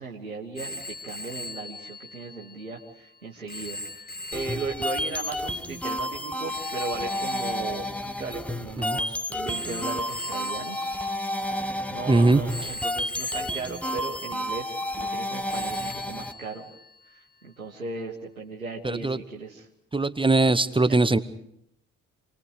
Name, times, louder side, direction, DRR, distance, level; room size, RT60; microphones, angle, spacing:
voice 1, 0.0-11.0 11.9-16.7 17.1-19.7 20.9-21.0, right 4 dB, 85° right, -2 dB, 1.6 m, -37 dB
Telephone, 0.6-8.9 9.5-12.0 12.5-15.2 15.5-17.2, left 2 dB, 20° left, 1.9 m, -41 dB
sound 1, 4.3-16.3, left 1 dB, 5° left, 1.3 m, -31 dB
voice 2, 12.1-12.4 18.8-19.2 19.9-21.2, right 2 dB, 10° right, 13 dB, 1.0 m, -21 dB
28.0 x 21.0 x 4.9 m, 0.77 s
figure-of-eight pair, 50°, 40 cm